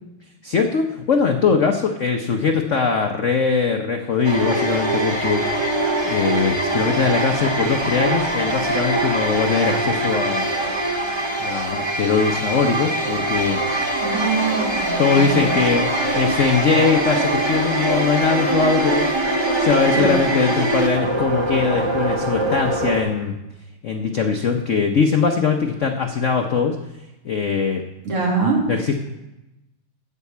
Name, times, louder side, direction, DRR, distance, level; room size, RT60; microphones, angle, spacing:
voice 1, 0.4-5.4 5.8-10.5 11.4-13.7 15.0-19.0 19.6-23.4 23.8-26.7 27.2-27.8 28.7-29.0, left 5 dB, 80° left, 4 dB, 0.6 m, -21 dB
sound 1, 4.2-23.0, right 1 dB, 20° right, 0.9 m, -23 dB
voice 2, 14.0-15.5 19.9-20.1 28.0-28.6, right 4 dB, 75° right, -3 dB, 3.5 m, -23 dB
14.0 x 4.7 x 8.4 m, 0.97 s
omnidirectional pair, 2.4 m